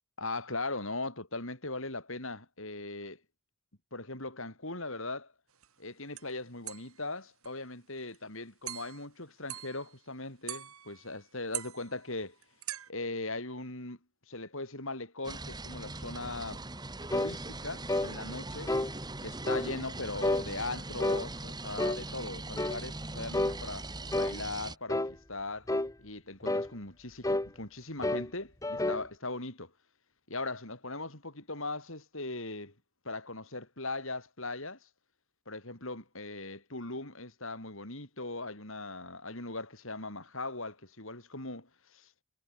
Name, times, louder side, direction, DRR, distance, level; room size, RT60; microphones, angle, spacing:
voice 1, 0.2-3.2 3.9-5.3 5.8-12.3 12.9-14.0 14.3-16.6 17.1-18.7 19.2-23.9 24.1-25.7 26.0-29.7 30.3-32.7 33.0-34.8 35.5-42.1, left 2 dB, 60° left, 6.3 m, -39 dB
sound 1, 5.6-5.7 6.2-6.3 6.7-7.0 7.4-7.6 8.0-8.2 8.7-9.1 9.5-10.0 10.5-11.2 11.5-12.9, right 14 dB, 70° right, 3.8 m, -42 dB
sound 2, 15.2-24.8, right 2 dB, 20° right, 2.5 m, -41 dB
sound 3, 17.1-17.4 17.9-18.1 18.7-18.9 19.5-19.7 20.2-20.5 21.0-21.3 21.8-22.0 22.6-22.8 23.3-23.6 24.1-24.4 24.9-25.1 25.7-25.9 26.4-26.7 27.2-27.5 28.0-28.3 28.6-29.1, left 1 dB, 15° left, 0.7 m, -30 dB
head